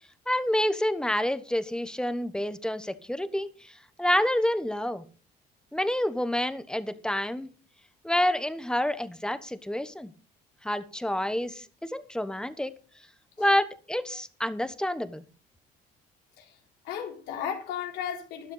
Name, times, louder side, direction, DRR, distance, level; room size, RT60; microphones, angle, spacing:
voice 1, 0.3-3.7 4.0-5.0 5.7-7.5 8.0-10.1 10.6-12.7 13.4-15.2, left 1 dB, 5° left, 1.1 m, -28 dB
voice 2, 16.8-18.5, left 8 dB, 90° left, 3.8 m, -35 dB
12.5 x 11.5 x 4.0 m
cardioid pair, 110°, 17 cm